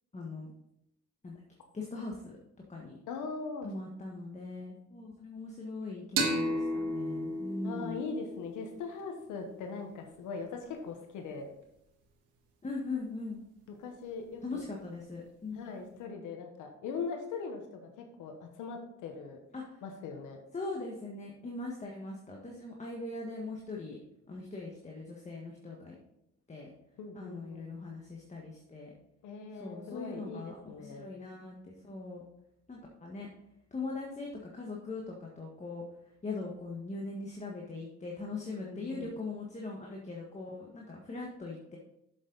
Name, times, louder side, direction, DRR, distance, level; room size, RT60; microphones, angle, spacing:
voice 1, 0.1-0.5 1.2-1.4 1.7-2.4 2.7-3.0 3.6-8.0 12.6-13.4 14.4-15.7 19.5-19.8 20.5-24.0 24.3-26.0 26.5-26.7 27.1-28.9 29.5-32.2 32.7-33.3 33.7-35.8 36.2-41.8, left 3 dB, 25° left, -1 dB, 1.6 m, -41 dB
voice 2, 3.1-3.7 7.6-11.5 13.7-14.6 15.5-19.4 19.8-20.4 27.0-27.6 29.2-31.1 38.6-39.1, left 5 dB, 90° left, 4 dB, 1.2 m, -40 dB
sound 1, 6.2-9.5, right 1 dB, 85° right, 1.7 m, -34 dB
7.5 x 7.4 x 4.0 m, 0.83 s
cardioid pair, 90°, 30 cm